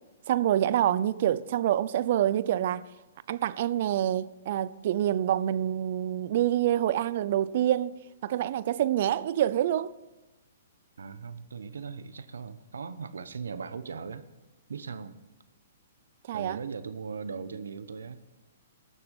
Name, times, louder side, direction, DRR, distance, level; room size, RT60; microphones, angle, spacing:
voice 1, 0.3-2.9 3.3-7.9 8.2-9.9 16.3-16.6, right 11 dB, 55° right, 0.6 m, -26 dB
voice 2, 11.0-14.3 14.7-15.2 16.3-18.2, right 5 dB, 85° right, 1.0 m, -39 dB
19.5 x 7.0 x 5.4 m
hypercardioid pair, 135°, 0 cm